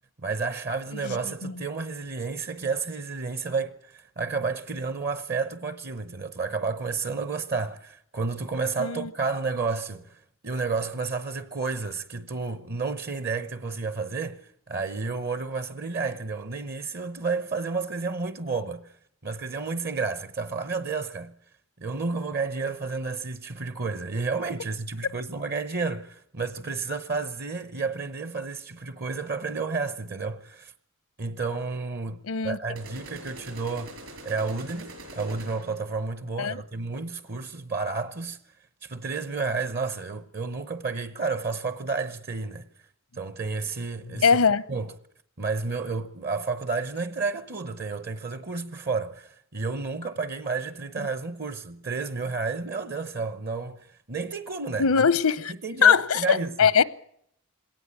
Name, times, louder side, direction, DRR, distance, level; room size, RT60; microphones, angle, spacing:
voice 1, 0.2-14.4 14.7-18.9 19.2-21.3 21.8-30.7 31.2-32.2 32.4-38.4 38.8-42.7 43.1-44.4 44.7-44.9 45.4-54.9 55.6-56.5, right 4 dB, 45° right, 0.9 m, -31 dB
voice 2, 1.0-1.5 8.8-9.1 32.2-32.6 36.4-36.6 44.1-44.6 51.0-51.1 54.8-55.5 55.8-56.8, left 6 dB, 85° left, 0.8 m, -22 dB
sound 1, 32.8-35.9, right 1 dB, 70° right, 6.7 m, -44 dB
21.5 x 18.0 x 8.8 m
head